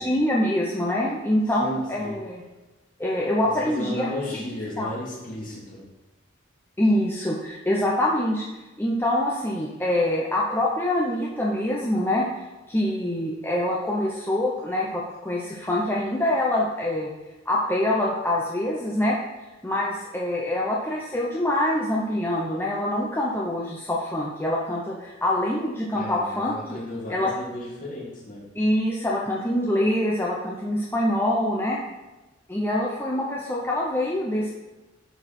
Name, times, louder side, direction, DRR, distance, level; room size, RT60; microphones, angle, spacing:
voice 1, 0.0-2.4 3.0-4.9 6.8-8.4 8.8-12.3 12.7-17.1 17.5-19.2 19.6-26.8 27.1-27.3 28.5-31.8 32.5-34.5, left 1 dB, 10° left, -4 dB, 0.9 m, -25 dB
voice 2, 1.6-2.2 3.4-5.8 25.9-28.5, left 1 dB, 40° left, -5 dB, 2.9 m, -35 dB
11.0 x 4.8 x 4.4 m, 1.1 s
head